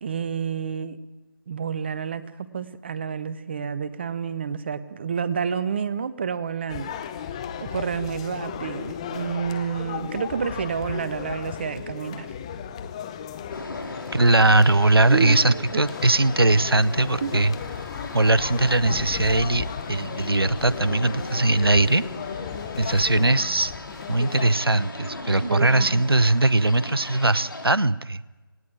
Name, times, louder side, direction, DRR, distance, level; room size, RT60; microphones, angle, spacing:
voice 1, 0.0-1.0 1.5-6.9 7.6-12.3 15.1-15.8 17.2-17.3 25.4-26.0, right 6 dB, 30° right, 14 dB, 0.9 m, -29 dB
sound 1, 6.7-24.5, left 8 dB, 15° left, 0.7 m, -35 dB
sound 2, 13.5-27.7, left 2 dB, 65° left, 4.4 m, -39 dB
voice 2, 14.1-17.5 18.1-22.0 22.8-23.7 24.1-28.2, right 2 dB, 90° right, 17 dB, 0.8 m, -20 dB
19.0 x 17.0 x 9.0 m, 1.1 s
figure-of-eight pair, 155°, 12 cm